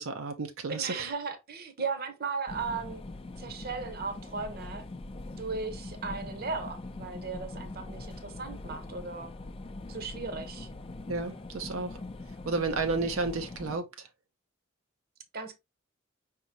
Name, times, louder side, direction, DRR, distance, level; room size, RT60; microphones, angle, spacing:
voice 1, 0.0-1.1 11.1-12.0 12.4-14.1, right 3 dB, 80° right, 0.6 m, -32 dB
voice 2, 0.7-3.0 3.4-4.8 5.4-9.3 9.9-10.7 15.3-15.5, right 4 dB, 45° right, 0.9 m, -36 dB
sound 1, 2.5-13.8, left 2 dB, 25° left, 0.5 m, -42 dB
5.3 x 3.7 x 2.8 m
head